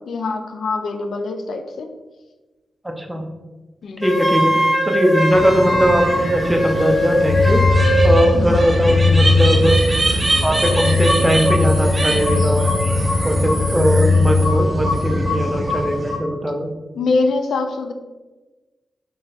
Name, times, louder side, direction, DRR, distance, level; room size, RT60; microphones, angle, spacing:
voice 1, 0.0-1.9 3.8-4.0 8.3-8.7 16.9-17.9, left 3 dB, 80° left, 6 dB, 0.4 m, -23 dB
voice 2, 2.8-3.3 4.0-4.6 4.8-7.6 8.0-9.8 10.4-12.6 13.2-16.7, equal, 10° right, 3 dB, 0.7 m, -19 dB
Wind instrument woodwind instrument, 4.0-8.2, equal, 30° left, 1.2 m, -20 dB
sound 1, 5.3-16.2, right 1 dB, 25° right, 1.1 m, -24 dB
sound 2, 7.2-15.6, left 3 dB, 60° left, 1.0 m, -19 dB
3.4 x 3.3 x 4.0 m, 1.2 s
cardioid pair, 70°, 0 cm